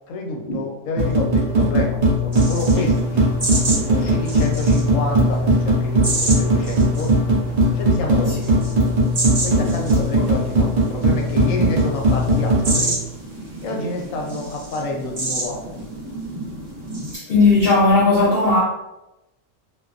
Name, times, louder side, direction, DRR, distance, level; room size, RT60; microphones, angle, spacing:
voice 1, 0.1-3.3 3.8-7.1 7.7-8.3 9.4-13.0 13.6-15.9, left 2 dB, 80° left, 0 dB, 1.0 m, -29 dB
sound 1, 1.0-12.8, right 1 dB, 75° right, 0.3 m, -19 dB
sound 2, 2.3-17.2, right 2 dB, 45° right, 0.7 m, -30 dB
voice 2, 17.1-18.6, left 3 dB, 60° left, -6 dB, 0.6 m, -16 dB
2.3 x 2.2 x 2.4 m, 0.95 s
omnidirectional pair, 1.4 m